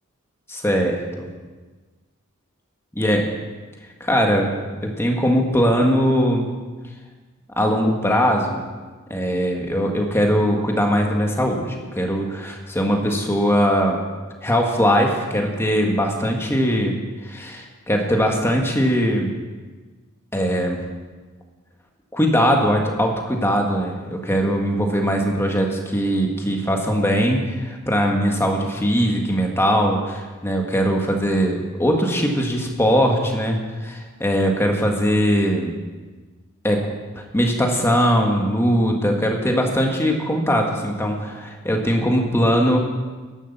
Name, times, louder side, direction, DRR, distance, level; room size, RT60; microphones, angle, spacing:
voice 1, 0.5-1.3 3.0-3.2 4.0-4.5 4.8-6.5 7.6-8.6 9.1-14.0 14.4-16.9 17.2-19.3 20.3-20.8 22.1-35.8 36.6-36.9 37.1-42.8, equal, 10° left, 1 dB, 1.8 m, -20 dB
11.5 x 11.5 x 6.9 m, 1.4 s
head